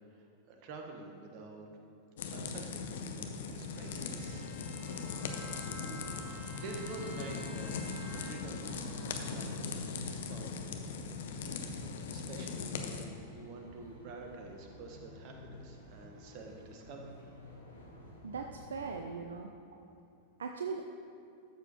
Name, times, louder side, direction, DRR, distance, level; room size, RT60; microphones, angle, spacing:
voice 1, 0.0-1.7 2.3-4.5 6.6-10.7 12.1-17.2, right 3 dB, 40° right, 2 dB, 1.2 m, -48 dB
sound 1, 2.2-13.0, left 5 dB, 60° left, 0.7 m, -40 dB
Bowed string instrument, 3.7-8.8, right 1 dB, 30° left, 1.2 m, -51 dB
sound 2, 4.7-19.0, left 1 dB, 90° left, 1.8 m, -52 dB
voice 2, 18.2-19.8 20.4-20.8, right 5 dB, 70° right, 3 dB, 0.4 m, -40 dB
13.0 x 7.1 x 2.9 m, 2.6 s
figure-of-eight pair, 90°, 0 cm